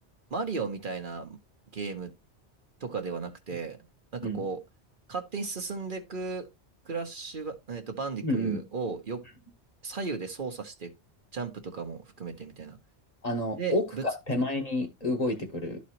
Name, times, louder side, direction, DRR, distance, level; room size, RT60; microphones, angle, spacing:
voice 1, 0.3-1.4 1.7-2.1 2.8-3.8 4.1-4.6 5.1-6.5 6.8-9.2 9.8-10.9 11.3-12.8 13.6-14.0, right 4 dB, 50° right, 1.1 m, -35 dB
voice 2, 8.2-8.6 13.2-15.8, left 1 dB, 35° left, 1.3 m, -29 dB
12.0 x 4.2 x 2.9 m
omnidirectional pair, 1.1 m